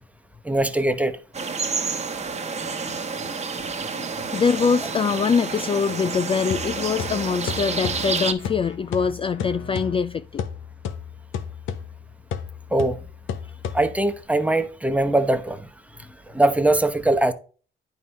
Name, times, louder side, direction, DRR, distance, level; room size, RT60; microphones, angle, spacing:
voice 1, 0.4-1.2 12.7-13.0 13.7-15.7 16.3-17.3, right 2 dB, 5° right, 1.0 m, -21 dB
sound 1, 1.3-8.3, right 5 dB, 35° right, 1.2 m, -29 dB
sound 2, 2.3-9.9, left 3 dB, 65° left, 2.2 m, -46 dB
voice 2, 4.3-10.4, left 6 dB, 25° left, 0.3 m, -23 dB
sound 3, 6.5-14.2, left 7 dB, 85° left, 1.0 m, -34 dB
9.4 x 5.6 x 3.2 m
cardioid pair, 90°, 20 cm